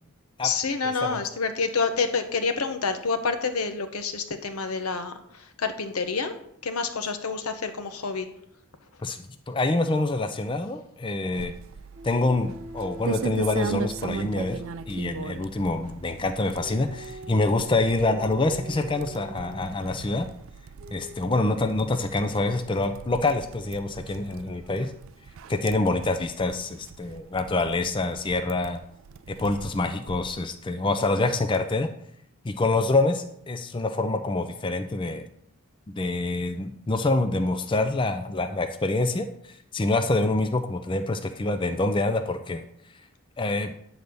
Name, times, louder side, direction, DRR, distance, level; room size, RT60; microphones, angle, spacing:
voice 1, 0.4-6.3 6.6-8.3, left 4 dB, 85° left, 8 dB, 0.9 m, -28 dB
voice 2, 9.5-11.5 12.0-14.6 14.9-20.3 20.9-24.9 25.5-28.8 29.3-31.9 32.4-35.2 36.0-42.6 43.4-43.7, left 2 dB, 20° left, 7 dB, 0.4 m, -26 dB
sound 1, 11.3-30.5, right 5 dB, 65° right, 0.4 m, -40 dB
sound 2, 11.9-15.4 16.6-19.7 20.8-21.1, right 1 dB, 40° right, 1.0 m, -43 dB
9.5 x 4.0 x 6.8 m, 0.74 s
head